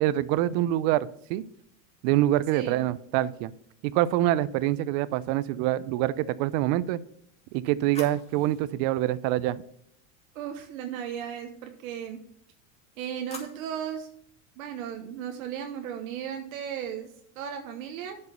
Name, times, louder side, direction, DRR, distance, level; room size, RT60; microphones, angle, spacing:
voice 1, 0.0-1.4 2.0-3.5 3.8-7.0 7.5-9.6, right 14 dB, 55° right, 18 dB, 0.6 m, -25 dB
voice 2, 2.5-2.8 10.3-12.2 13.0-14.1 14.6-17.1 17.4-18.2, right 9 dB, 75° right, 5 dB, 1.1 m, -35 dB
sound 1, 7.1-10.2 12.6-14.1, left 2 dB, 15° left, 2.3 m, -49 dB
7.9 x 5.4 x 6.8 m, 0.69 s
supercardioid pair, 105°, 42 cm